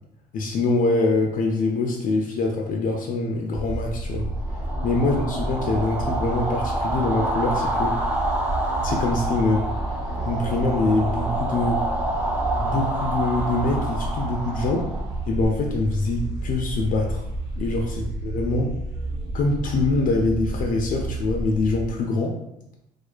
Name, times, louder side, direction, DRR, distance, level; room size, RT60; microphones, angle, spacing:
voice 1, 0.3-4.3 4.8-8.0 8.8-9.7 10.2-11.8 12.6-14.9 15.3-17.3 17.6-18.7 19.3-22.4, left 3 dB, 55° left, 1 dB, 0.4 m, -24 dB
sound 1, 3.5-21.9, right 2 dB, 80° right, 0.7 m, -31 dB
sound 2, 4.3-15.5, right 2 dB, 10° right, 0.5 m, -28 dB
2.4 x 2.2 x 2.4 m, 0.84 s
cardioid pair, 110°, 17 cm